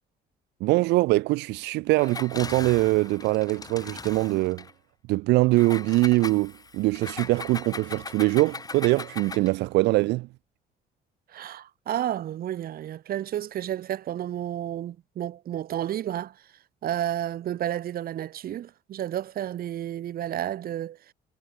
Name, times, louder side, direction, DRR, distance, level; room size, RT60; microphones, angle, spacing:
voice 1, 0.6-4.6 5.1-10.3, right 21 dB, 90° right, 2.3 m, -23 dB
Engine, 1.9-4.7 5.5-9.6, left 4 dB, 20° left, 2.9 m, -39 dB
voice 2, 11.3-16.4 16.8-21.0, right 11 dB, 60° right, 7.5 m, -31 dB
cardioid pair, 110°, 17 cm